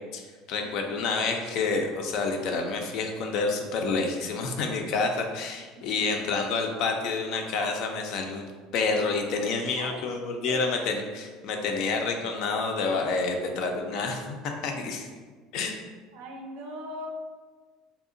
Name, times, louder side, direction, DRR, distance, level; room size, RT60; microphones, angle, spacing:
voice 1, 0.5-8.4 8.7-15.0 15.5-15.8, left 4 dB, 65° left, 3 dB, 0.4 m, -28 dB
voice 2, 16.1-17.1, equal, 70° right, 1 dB, 0.5 m, -40 dB
2.7 x 2.0 x 2.5 m, 1.4 s
supercardioid pair, 100°, 0 cm